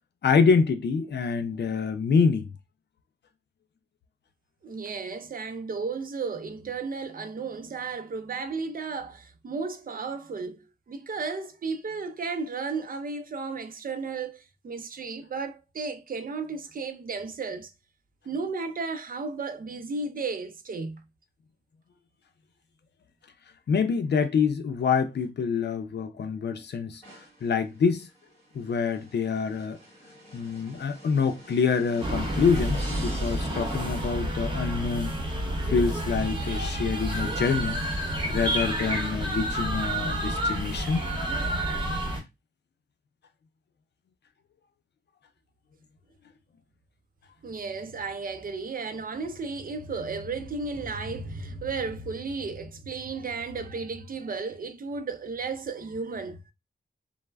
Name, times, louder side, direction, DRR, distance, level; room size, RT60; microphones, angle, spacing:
voice 1, 0.2-2.5 23.7-27.0 27.4-28.1 28.5-29.8 30.3-35.1 35.6-37.8 38.2-41.1, left 5 dB, 75° left, 0.5 m, -26 dB
voice 2, 4.6-17.7 18.3-21.0 47.4-56.5, right 4 dB, 55° right, 0.5 m, -34 dB
sound 1, 27.0-34.6, equal, 30° left, 1.3 m, -47 dB
sound 2, 32.0-42.2, right 1 dB, 25° right, 0.9 m, -29 dB
3.2 x 2.0 x 2.2 m
wide cardioid pair, 70°, 18 cm